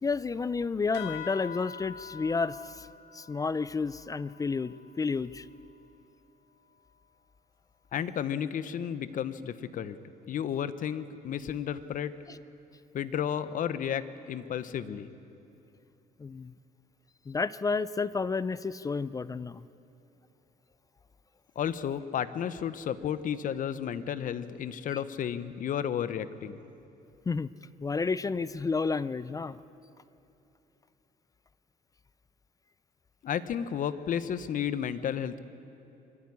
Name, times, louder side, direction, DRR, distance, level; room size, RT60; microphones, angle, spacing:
voice 1, 0.0-2.9 3.1-5.5 12.3-12.4 16.2-16.5 17.3-19.7 27.3-27.5 27.8-29.6, left 4 dB, 20° left, 17 dB, 0.4 m, -31 dB
sound 1, 0.9-5.9, left 8 dB, 80° left, 1.8 m, -46 dB
voice 2, 7.9-10.0 10.3-12.1 12.9-15.1 21.6-26.6 33.2-35.4, left 9 dB, 50° left, 13 dB, 1.0 m, -32 dB
23.5 x 13.5 x 9.9 m, 2.8 s
cardioid pair, 110°, 17 cm